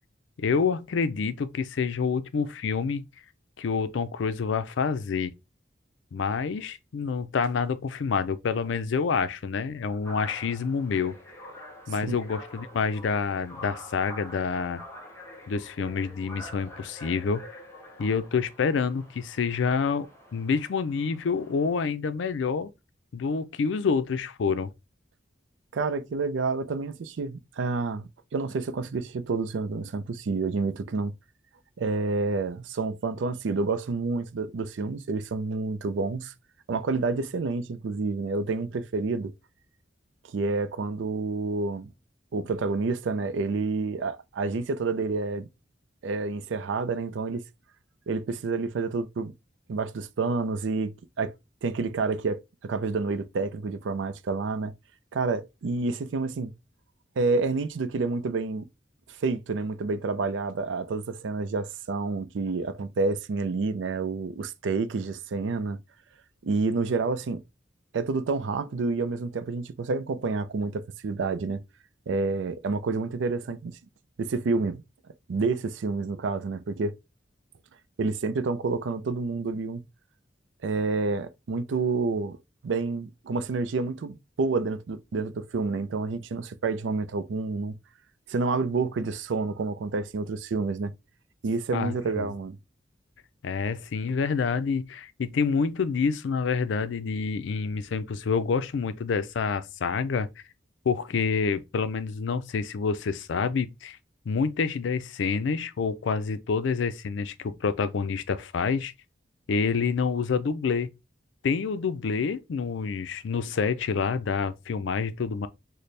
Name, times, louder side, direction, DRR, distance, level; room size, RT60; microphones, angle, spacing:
voice 1, 0.4-3.0 3.6-5.3 6.1-11.2 11.9-14.8 15.5-17.4 18.0-22.7 23.1-24.7 91.7-92.3 93.4-100.3 100.9-104.0 104.3-108.9 109.5-110.9 111.4-115.5, left 5 dB, 85° left, 0.4 m, -27 dB
sound 1, 10.0-21.8, left 1 dB, 15° left, 0.8 m, -46 dB
voice 2, 25.7-31.1 31.8-36.3 36.7-39.3 40.3-41.9 42.3-45.5 46.0-47.4 48.1-49.3 49.7-51.3 51.6-54.7 55.1-56.5 57.2-58.7 59.2-65.8 66.4-67.4 67.9-71.6 72.1-73.8 74.2-74.8 75.3-77.0 78.0-79.8 80.6-82.4 82.6-87.7 88.3-90.9 91.4-92.6, right 3 dB, 85° right, 0.4 m, -29 dB
4.1 x 2.1 x 3.2 m
head